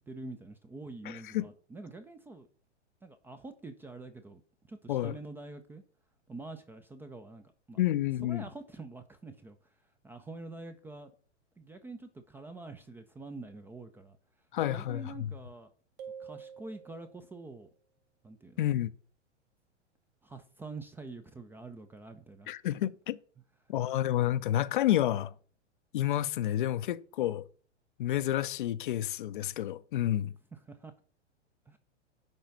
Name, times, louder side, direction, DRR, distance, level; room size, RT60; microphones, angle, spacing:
voice 1, 0.1-2.5 3.0-4.4 4.7-5.8 6.3-7.8 8.2-9.6 10.0-11.1 11.6-14.2 14.6-15.7 16.2-17.7 18.2-18.6 20.2-22.8 30.5-30.9 31.7-31.8, right 3 dB, 5° right, 0.5 m, -46 dB
voice 2, 1.1-1.5 4.9-5.1 7.8-8.4 14.5-15.3 18.6-18.9 22.5-23.2 23.7-25.3 25.9-27.4 28.0-30.3, left 13 dB, 45° left, 0.6 m, -30 dB
sound 1, 16.0-17.5, right 7 dB, 30° right, 0.9 m, -47 dB
10.5 x 4.0 x 6.8 m
figure-of-eight pair, 100°, 35 cm